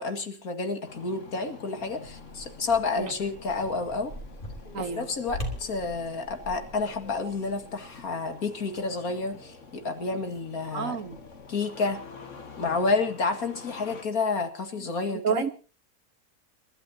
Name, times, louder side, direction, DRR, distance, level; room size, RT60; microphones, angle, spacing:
voice 1, 0.0-4.1 4.8-11.0 11.5-12.0 12.6-15.5, left 4 dB, 65° left, 2.5 m, -30 dB
Engine starting, 0.8-14.0, left 4 dB, 50° left, 2.1 m, -47 dB
sound 1, 2.0-9.7 9.9-11.5, equal, 35° left, 3.4 m, -43 dB
voice 2, 4.7-5.1 10.7-11.2 15.2-15.5, right 6 dB, 60° right, 1.4 m, -29 dB
30.0 x 12.5 x 2.9 m
omnidirectional pair, 1.6 m